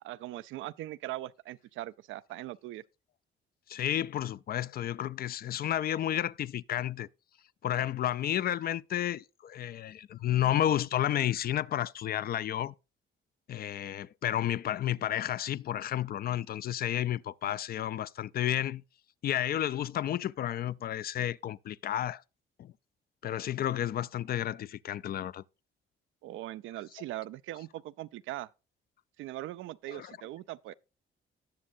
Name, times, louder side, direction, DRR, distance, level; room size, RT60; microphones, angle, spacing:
voice 1, 0.0-2.8 26.2-28.5 29.2-30.7, right 15 dB, 80° right, 0.4 m, -40 dB
voice 2, 3.7-7.1 7.6-12.7 13.5-18.8 19.2-22.2 22.6-22.7 23.2-25.4 29.9-30.1, left 11 dB, 50° left, 0.4 m, -31 dB
18.5 x 6.4 x 2.6 m
cardioid pair, 90°, 20 cm